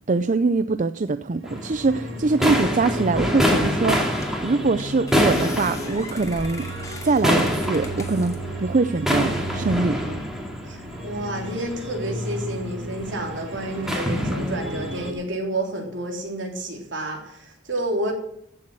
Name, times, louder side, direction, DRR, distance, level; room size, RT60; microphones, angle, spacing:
voice 1, 0.1-6.7 7.0-10.0, right 3 dB, 40° right, 11 dB, 0.5 m, -23 dB
sound 1, 1.3-15.1, equal, 85° right, 3.5 m, -35 dB
sound 2, 1.4-15.1, equal, ahead, 2.6 m, -27 dB
sound 3, 4.2-4.5 4.8-8.4 8.9-9.6, left 3 dB, 20° left, 2.4 m, -40 dB
voice 2, 10.6-18.1, right 1 dB, 70° right, 1 dB, 3.7 m, -30 dB
15.5 x 7.4 x 7.8 m, 0.74 s
head